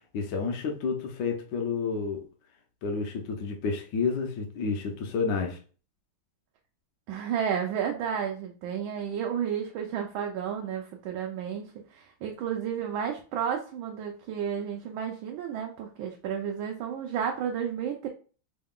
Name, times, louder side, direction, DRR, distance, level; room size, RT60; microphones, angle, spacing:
voice 1, 0.1-2.2 2.8-5.6, left 5 dB, 65° left, 1.2 m, -30 dB
voice 2, 7.1-18.1, right 8 dB, 80° right, 1.3 m, -32 dB
3.7 x 2.3 x 3.6 m
omnidirectional pair, 2.3 m